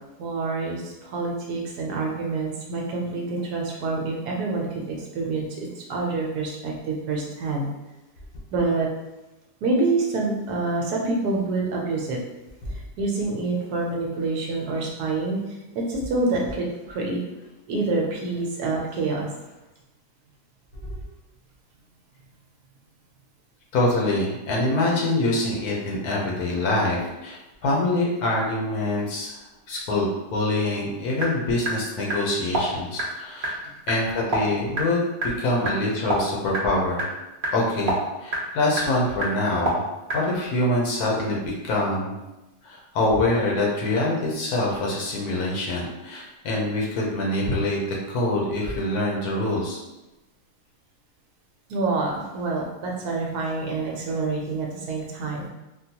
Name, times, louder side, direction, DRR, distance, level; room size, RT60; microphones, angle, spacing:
voice 1, 0.2-7.7 8.5-8.9 9.6-12.2 12.7-17.2 17.7-19.3 51.7-55.5, right 3 dB, 75° right, -1 dB, 1.1 m, -27 dB
voice 2, 23.7-29.4 29.7-33.5 33.9-35.0 35.4-37.1 37.5-39.8 40.1-42.2 42.6-49.8, left 2 dB, 70° left, -3 dB, 1.2 m, -25 dB
sound 1, 31.2-40.2, right 1 dB, 50° right, 0.6 m, -30 dB
3.7 x 2.2 x 2.8 m, 1.0 s
omnidirectional pair, 1.8 m